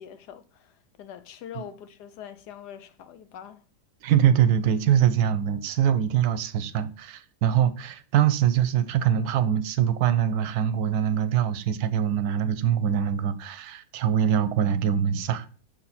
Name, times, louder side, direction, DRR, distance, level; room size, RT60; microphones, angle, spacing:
voice 1, 0.0-3.6, left 9 dB, 85° left, 1.3 m, -43 dB
voice 2, 4.0-15.5, right 9 dB, 70° right, 1.0 m, -23 dB
6.5 x 4.3 x 4.0 m
omnidirectional pair, 1.7 m